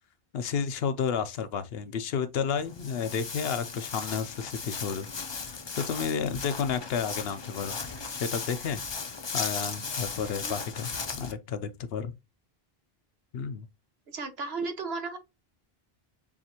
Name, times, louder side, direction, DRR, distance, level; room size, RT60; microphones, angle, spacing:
voice 1, 0.3-5.1 5.4-7.8 8.2-8.8 9.3-10.9 11.2-12.1 13.3-13.7, left 6 dB, 75° left, 0.9 m, -31 dB
Walk footsteps, 2.6-11.3, left 5 dB, 35° left, 0.4 m, -37 dB
voice 2, 10.2-10.5 14.1-15.2, right 4 dB, 80° right, 1.2 m, -35 dB
7.1 x 2.5 x 2.8 m
omnidirectional pair, 1.0 m